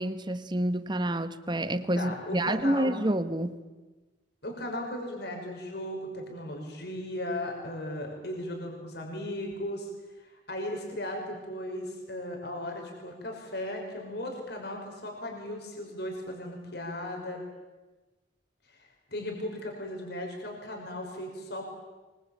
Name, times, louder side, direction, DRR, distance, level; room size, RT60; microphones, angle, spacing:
voice 1, 0.0-3.6, right 1 dB, 25° right, 12 dB, 1.3 m, -28 dB
voice 2, 1.9-2.9 4.4-9.9 10.2-17.4 18.8-21.7, left 1 dB, 60° left, 2 dB, 5.7 m, -37 dB
25.5 x 23.5 x 8.8 m, 1.2 s
head